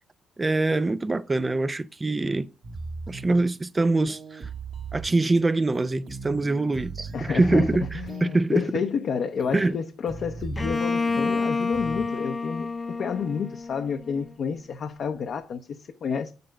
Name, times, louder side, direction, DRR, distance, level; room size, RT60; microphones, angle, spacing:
voice 1, 0.4-2.5 3.1-4.5 4.9-8.7 9.5-9.8, right 2 dB, 20° right, 0.5 m, -24 dB
sound 1, 2.6-3.4 4.1-5.4 5.7-8.4 9.4-9.7 10.1-11.4 11.7-12.1, right 4 dB, 55° right, 1.8 m, -37 dB
voice 2, 7.1-12.7 13.0-16.3, left 6 dB, 60° left, 0.8 m, -30 dB
Bowed string instrument, 10.6-14.3, left 4 dB, 25° left, 0.6 m, -29 dB
7.6 x 6.8 x 5.3 m
cardioid pair, 90°, 0 cm